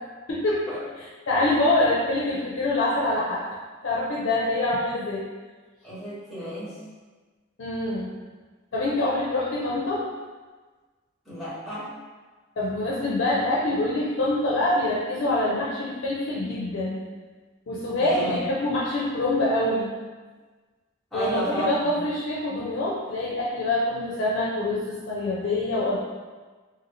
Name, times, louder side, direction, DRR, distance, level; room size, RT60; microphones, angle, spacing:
voice 1, 0.3-0.6 1.0-5.3 7.6-8.1 8.7-10.0 12.6-17.0 17.7-19.9 21.1-26.0, left 2 dB, 70° left, -6 dB, 0.5 m, -25 dB
voice 2, 5.8-6.8 11.2-11.9 18.0-18.6 21.1-21.7, equal, ahead, -14 dB, 1.2 m, -32 dB
2.8 x 2.6 x 2.9 m, 1.4 s
head